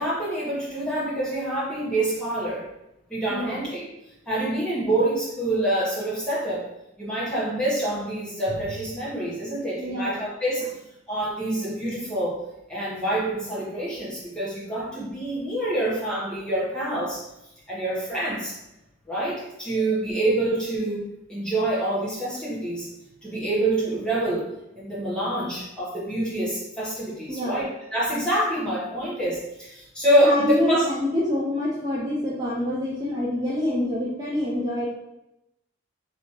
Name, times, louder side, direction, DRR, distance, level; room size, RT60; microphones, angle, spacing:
voice 1, 0.0-2.7 3.1-3.9 4.3-6.7 7.0-10.7 11.1-12.4 12.7-17.2 17.7-18.6 19.1-22.9 23.2-24.5 24.8-30.8, right 1 dB, 5° left, -8 dB, 1.0 m, -26 dB
voice 2, 3.3-3.6 4.7-4.9 9.8-10.2 27.3-27.7 30.2-34.9, left 1 dB, 20° right, -8 dB, 0.5 m, -26 dB
3.4 x 2.8 x 2.9 m, 0.87 s
head